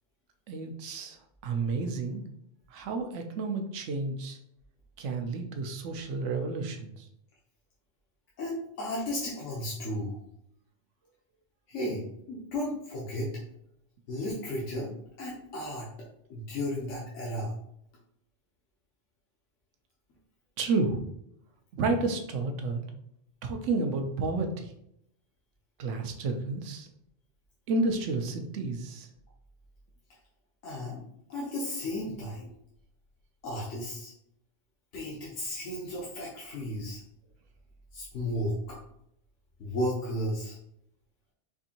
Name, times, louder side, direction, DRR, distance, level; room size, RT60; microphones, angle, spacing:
voice 1, 0.5-1.2 1.4-2.2 2.7-4.4 5.0-7.1 20.6-21.0 21.7-22.8 23.4-24.7 25.8-26.9 27.7-29.1, right 3 dB, 85° right, 5 dB, 0.9 m, -31 dB
voice 2, 8.4-10.2 11.7-13.3 14.1-14.9 15.2-15.9 16.3-17.5 30.6-31.0 31.3-32.5 33.4-34.1 34.9-37.0 37.9-38.8 39.6-40.6, left 1 dB, 80° left, -5 dB, 1.2 m, -34 dB
4.6 x 2.5 x 2.7 m, 0.75 s
omnidirectional pair, 1.2 m